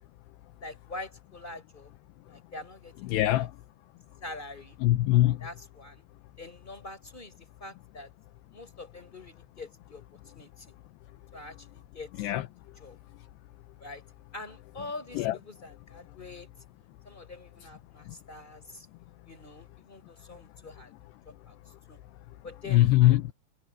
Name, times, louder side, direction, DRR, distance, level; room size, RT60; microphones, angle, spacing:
voice 1, 0.6-1.9 2.2-3.5 4.2-4.8 5.4-6.0 6.4-8.1 8.5-10.0 10.3-10.7 11.3-12.3 12.8-13.0 13.8-14.0 14.3-16.5 17.0-18.9 19.3-20.9 21.2-21.5 21.9-22.0 22.4-22.9, left 2 dB, 10° left, 5.5 m, -45 dB
voice 2, 3.1-3.5 4.8-5.4 12.2-12.4 15.2-15.4 18.1-18.2 22.7-23.3, left 15 dB, 80° left, 2.5 m, -22 dB
omnidirectional pair, 5.5 m